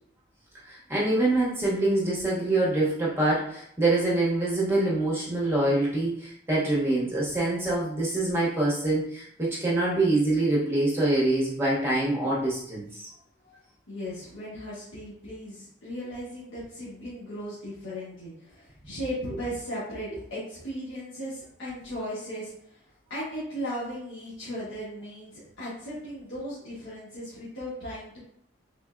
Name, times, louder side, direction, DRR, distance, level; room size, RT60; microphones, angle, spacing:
voice 1, 0.6-13.0, right 2 dB, 10° right, -6 dB, 0.8 m, -25 dB
voice 2, 13.9-22.5 23.1-28.2, equal, 80° left, -10 dB, 1.3 m, -37 dB
3.6 x 3.3 x 2.4 m, 0.70 s
head